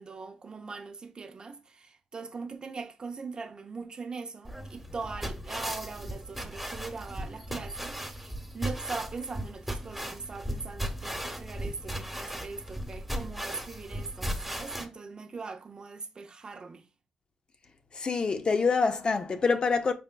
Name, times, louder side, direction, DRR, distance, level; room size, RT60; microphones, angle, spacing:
voice 1, 0.0-16.8, right 4 dB, 40° right, 0.6 m, -41 dB
sound 1, 4.5-14.9, equal, ahead, 1.1 m, -37 dB
voice 2, 17.9-19.9, left 4 dB, 45° left, 0.5 m, -26 dB
5.0 x 3.4 x 2.2 m
cardioid pair, 75°, 2 cm